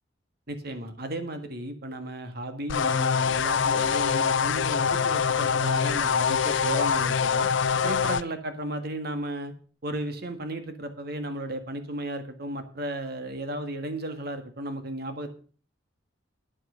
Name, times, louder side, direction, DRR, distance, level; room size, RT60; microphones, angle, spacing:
voice 1, 0.5-7.5 7.8-9.5 9.8-15.3, right 1 dB, 55° right, 8 dB, 1.8 m, -34 dB
sound 1, 2.7-8.2, left 6 dB, 75° left, 0.5 m, -24 dB
9.7 x 8.2 x 6.7 m, 0.40 s
head